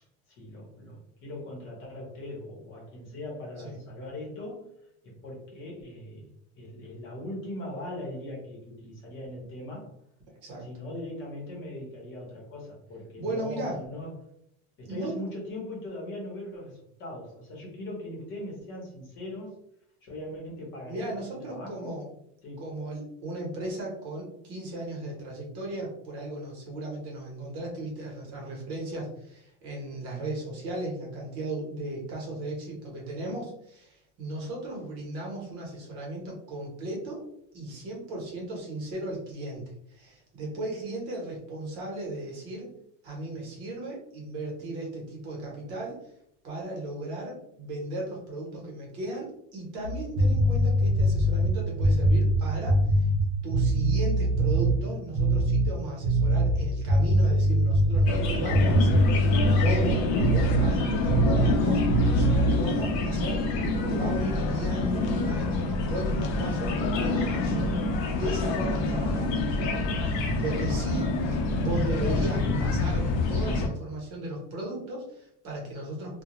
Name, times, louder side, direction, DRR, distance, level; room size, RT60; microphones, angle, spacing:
voice 1, 0.3-4.7 5.0-9.9 10.6-14.1 14.8-19.5 20.0-22.0 22.4-22.7 58.3-58.8 59.9-60.1 61.0-61.3, left 1 dB, 35° left, -3 dB, 0.9 m, -40 dB
voice 2, 13.2-13.8 14.9-15.2 20.9-22.1 22.6-37.3 37.5-39.6 39.9-42.7 43.0-46.0 46.4-53.1 53.4-61.8 62.1-63.5 63.9-67.8 68.1-76.2, right 1 dB, 45° right, -2 dB, 0.9 m, -36 dB
sound 1, 49.8-54.8 55.1-55.7 56.0-60.7 61.1-61.6 61.9-62.6, right 1 dB, 85° right, 0.7 m, -23 dB
sound 2, 58.1-73.7, left 3 dB, 75° left, 0.6 m, -27 dB
2.2 x 2.1 x 2.9 m, 0.74 s
cardioid pair, 175°, 32 cm